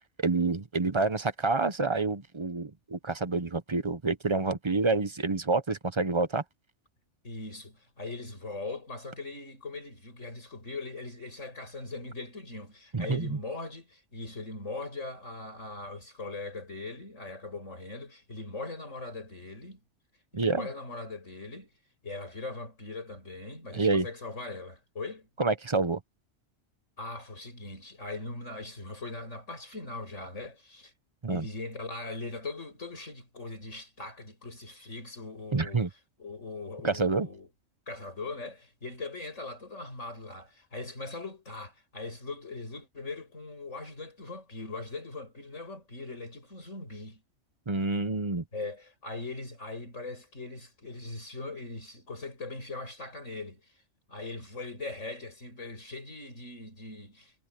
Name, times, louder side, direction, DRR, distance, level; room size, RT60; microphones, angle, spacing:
voice 1, 0.2-6.4 12.9-13.4 20.3-20.7 23.7-24.0 25.4-26.0 31.2-31.4 35.5-35.9 36.8-37.3 47.7-48.4, right 3 dB, 25° right, 0.8 m, -28 dB
voice 2, 7.2-19.8 20.3-21.7 22.0-25.3 27.0-30.9 31.3-35.9 36.2-37.5 37.9-47.2 48.5-53.7 54.1-57.3, left 3 dB, 85° left, 7.7 m, -40 dB
omnidirectional pair, 1.3 m